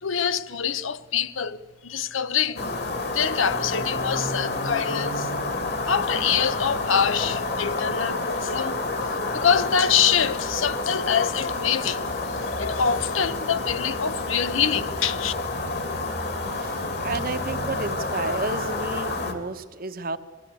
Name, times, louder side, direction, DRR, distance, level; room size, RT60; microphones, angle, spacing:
voice 1, 0.0-2.7 3.1-5.3 5.9-8.8 9.1-15.3, left 7 dB, 85° left, 0.8 m, -25 dB
sound 1, 2.6-19.3, left 2 dB, 55° left, 2.6 m, -29 dB
voice 2, 16.5-20.2, right 3 dB, 50° right, 1.1 m, -31 dB
22.5 x 15.5 x 8.2 m
head